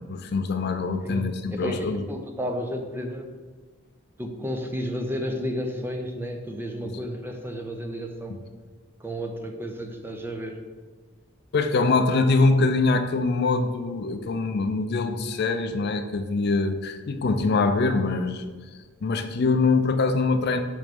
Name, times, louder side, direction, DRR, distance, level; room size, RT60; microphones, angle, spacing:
voice 1, 0.0-2.1 8.3-8.4 11.5-18.4 19.0-20.6, left 3 dB, 55° left, 7 dB, 0.4 m, -23 dB
voice 2, 1.0-3.3 4.2-8.3 9.0-10.6, equal, 10° right, 4 dB, 0.5 m, -32 dB
6.0 x 3.0 x 5.2 m, 1.4 s
head